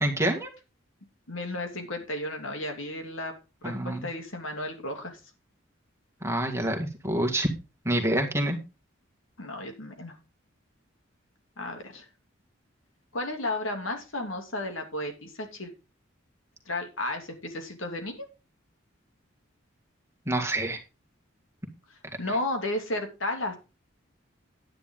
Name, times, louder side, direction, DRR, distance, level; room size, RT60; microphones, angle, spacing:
voice 1, 0.0-0.5 3.6-4.1 6.2-7.5 7.9-8.6 20.3-20.8, right 1 dB, 15° right, 3 dB, 2.0 m, -27 dB
voice 2, 1.3-3.3 3.6-5.2 9.4-10.2 11.6-12.1 13.1-15.7 16.7-18.3 22.2-23.6, left 1 dB, 75° left, 4 dB, 2.8 m, -33 dB
10.5 x 10.0 x 3.8 m, 0.29 s
head